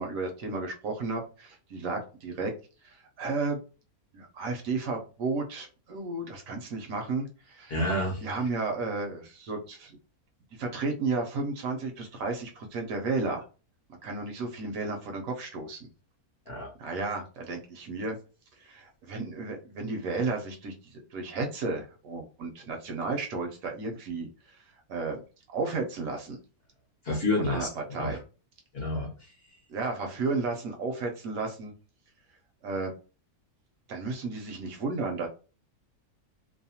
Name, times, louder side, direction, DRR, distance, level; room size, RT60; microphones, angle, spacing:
voice 1, 0.0-2.5 2.8-3.6 4.1-7.7 8.2-10.0 10.6-13.4 14.0-15.9 16.8-18.2 18.6-24.3 24.9-25.2 25.5-26.4 27.4-28.2 29.7-31.7 32.6-32.9 33.9-35.3, right 3 dB, 70° right, 3 dB, 1.0 m, -33 dB
voice 2, 7.7-8.2 16.5-16.7 27.0-28.2 28.7-29.1, left 1 dB, 55° left, -1 dB, 0.7 m, -29 dB
2.7 x 2.1 x 2.7 m, 0.34 s
omnidirectional pair, 1.6 m